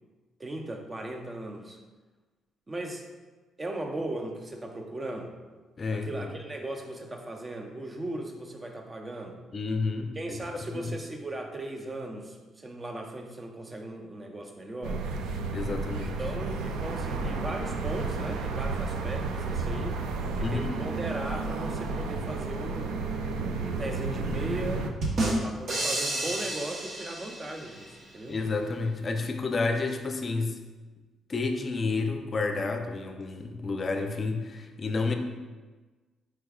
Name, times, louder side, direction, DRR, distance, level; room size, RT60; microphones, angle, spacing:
voice 1, 0.4-1.8 2.7-3.0 3.6-5.3 5.9-9.4 10.2-15.0 16.2-20.0 20.4-23.0 23.6-24.9 25.4-28.4, right 1 dB, 25° right, 3 dB, 0.6 m, -37 dB
voice 2, 5.8-6.3 9.5-10.4 10.7-10.9 15.5-16.2 20.4-20.7 28.3-30.6 31.3-35.1, left 3 dB, 40° left, 5 dB, 0.5 m, -30 dB
sound 1, 14.8-24.9, right 3 dB, 85° right, 0.4 m, -32 dB
sound 2, 25.0-27.8, right 1 dB, 60° right, 1.0 m, -30 dB
4.7 x 4.6 x 2.3 m, 1.3 s
cardioid pair, 90°, 0 cm